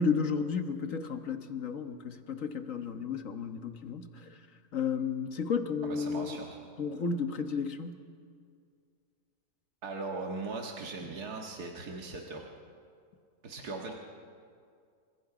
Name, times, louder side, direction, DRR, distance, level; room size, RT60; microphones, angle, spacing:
voice 1, 0.0-4.4 4.7-6.4 6.8-8.0, left 5 dB, 60° left, 7 dB, 1.7 m, -33 dB
voice 2, 5.8-6.7 9.8-12.5 13.4-13.9, right 3 dB, 80° right, 1 dB, 2.1 m, -39 dB
27.5 x 26.0 x 5.0 m, 2.2 s
omnidirectional pair, 1.6 m